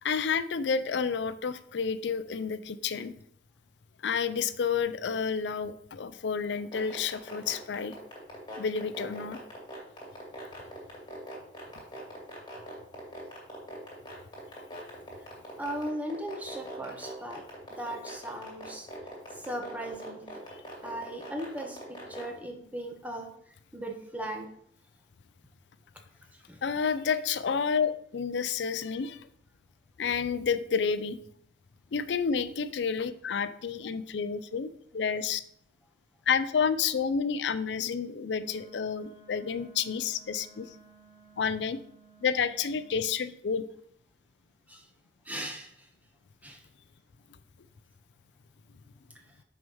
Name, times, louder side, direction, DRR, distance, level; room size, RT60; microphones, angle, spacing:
voice 1, 0.0-3.1 4.0-8.0 8.6-9.4 26.6-29.3 30.0-31.2 31.9-35.4 36.3-40.7 41.4-41.8 42.2-43.6, left 6 dB, 80° left, 13 dB, 0.4 m, -30 dB
sound 1, 6.6-22.2, left 1 dB, 25° left, 2.5 m, -42 dB
voice 2, 15.6-17.4 17.7-18.9 19.4-20.3 20.8-23.3 23.7-24.5 26.5-26.6 44.7-44.8 45.2-45.9 46.4-46.6, right 1 dB, 10° right, 2 dB, 1.0 m, -37 dB
Wind instrument woodwind instrument, 38.3-43.1, right 5 dB, 25° right, 2.6 m, -57 dB
6.2 x 4.8 x 5.5 m, 0.67 s
head